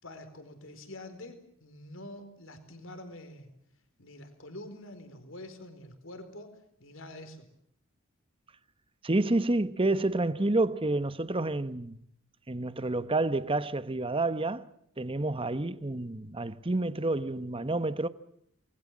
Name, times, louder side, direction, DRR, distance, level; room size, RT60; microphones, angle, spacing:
voice 1, 0.0-3.5 4.0-7.5, left 1 dB, 65° left, 4.3 m, -46 dB
voice 2, 9.0-12.0 12.5-14.7 15.0-18.1, right 2 dB, 25° right, 1.0 m, -29 dB
28.5 x 21.0 x 7.5 m
head